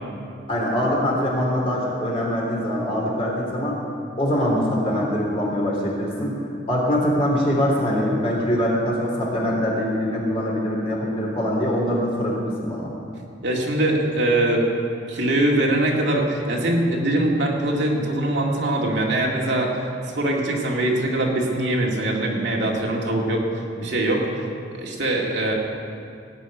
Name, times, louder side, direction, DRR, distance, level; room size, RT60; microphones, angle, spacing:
voice 1, 0.5-3.8 4.2-12.9, equal, 30° left, -4 dB, 3.4 m, -23 dB
voice 2, 13.4-14.7 15.1-23.4 23.8-24.3 24.7-25.5, right 1 dB, 65° right, -2 dB, 2.1 m, -22 dB
18.0 x 6.1 x 9.2 m, 2.4 s
head